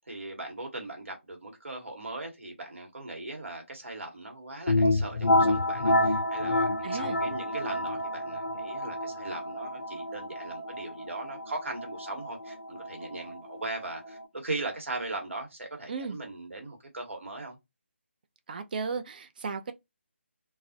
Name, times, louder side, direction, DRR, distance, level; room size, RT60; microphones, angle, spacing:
voice 1, 0.0-17.6, right 2 dB, 75° right, 1.0 m, -39 dB
sound 1, 4.7-14.2, left 1 dB, 85° left, 0.5 m, -29 dB
voice 2, 6.8-7.2 15.9-16.2 18.5-19.7, right 5 dB, 45° right, 0.3 m, -35 dB
2.3 x 2.0 x 2.6 m
figure-of-eight pair, 155°, 7 cm